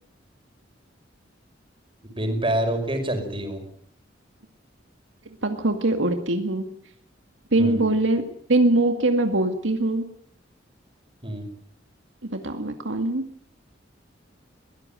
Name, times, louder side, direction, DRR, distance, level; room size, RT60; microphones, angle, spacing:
voice 1, 2.0-3.6 7.6-7.8 11.2-11.4, right 1 dB, 30° right, 6 dB, 5.6 m, -26 dB
voice 2, 5.4-6.7 7.5-8.2 8.5-10.1 12.3-13.2, right 2 dB, 80° right, 5 dB, 2.2 m, -22 dB
22.5 x 17.0 x 9.1 m, 0.67 s
head